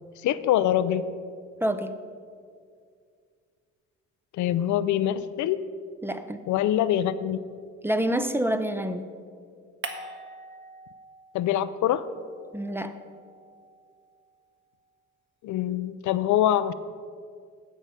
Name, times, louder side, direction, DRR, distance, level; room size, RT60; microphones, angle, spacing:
voice 1, 0.2-1.1 4.4-5.6 6.5-7.4 11.3-12.1 15.4-16.7, left 11 dB, 75° left, 14 dB, 0.5 m, -24 dB
voice 2, 1.6-1.9 6.0-6.5 7.8-9.1 12.5-13.0, right 1 dB, 10° right, 9 dB, 0.5 m, -27 dB
sound 1, 9.8-11.5 11.8-14.3, right 3 dB, 40° right, 1.1 m, -44 dB
15.0 x 5.5 x 4.9 m, 2.2 s
cardioid pair, 90°, 30 cm